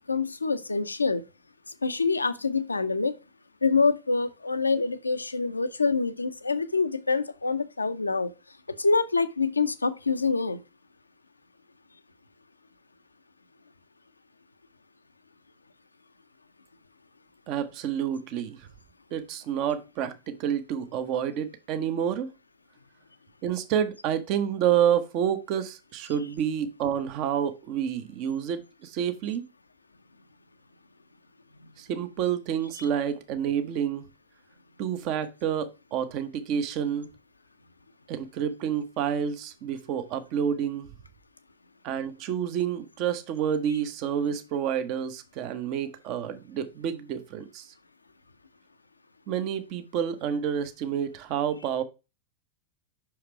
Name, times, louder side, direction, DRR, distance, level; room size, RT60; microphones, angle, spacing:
voice 1, 0.1-1.2 1.8-3.1 3.6-8.3 8.8-10.6, left 4 dB, 80° left, 0.6 m, -26 dB
voice 2, 17.5-18.7 19.1-22.3 23.4-29.4 31.8-34.1 34.8-37.1 38.1-40.9 41.8-47.7 49.3-51.8, right 8 dB, 40° right, 0.9 m, -29 dB
5.9 x 4.9 x 4.4 m
figure-of-eight pair, 90°, 0 cm